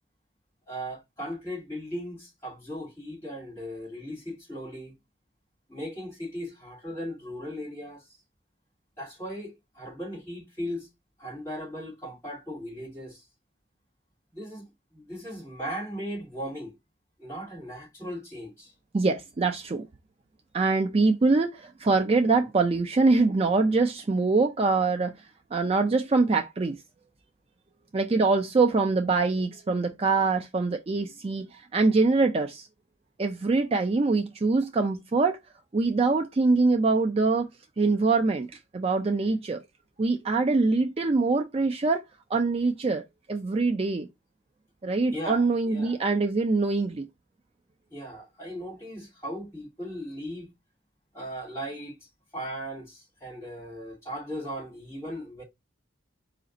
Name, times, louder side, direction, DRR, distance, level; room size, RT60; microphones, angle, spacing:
voice 1, 0.7-4.9 5.7-8.1 9.0-10.9 11.2-13.2 14.3-14.6 14.9-16.7 17.2-18.7 45.1-46.0 47.9-50.5 51.1-52.0 52.3-55.4, equal, 15° left, 2.3 m, -37 dB
voice 2, 18.9-19.9 20.5-25.1 25.5-26.8 27.9-32.7 33.2-35.4 35.7-37.5 37.8-38.5 38.7-39.6 40.0-42.0 42.3-43.0 43.3-44.1 44.8-47.1, right 3 dB, 30° right, 0.4 m, -24 dB
5.0 x 2.5 x 3.9 m
head